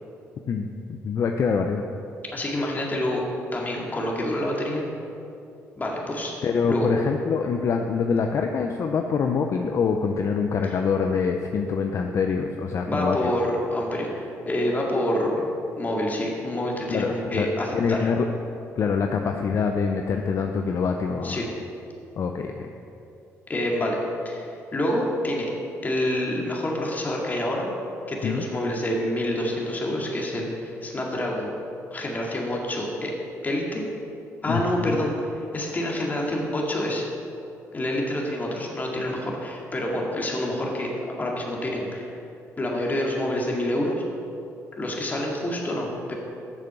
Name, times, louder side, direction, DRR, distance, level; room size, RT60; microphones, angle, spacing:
voice 1, 0.5-1.8 6.4-13.3 16.9-17.5 17.7-18.2 18.8-21.4 22.2-22.7 28.2-28.5 34.5-35.0, left 5 dB, 55° left, 4 dB, 0.6 m, -25 dB
voice 2, 2.3-3.2 3.5-4.8 5.8-6.3 6.7-6.9 12.9-15.4 15.8-18.0 21.2-21.5 23.5-24.0 24.2-25.5 25.8-27.7 28.1-31.5 31.9-33.1 33.4-33.8 34.4-37.1 37.7-42.1 42.6-44.0 44.8-46.1, left 1 dB, 30° left, -2 dB, 2.2 m, -27 dB
8.2 x 6.8 x 6.9 m, 2.7 s
cardioid pair, 80°, 6 cm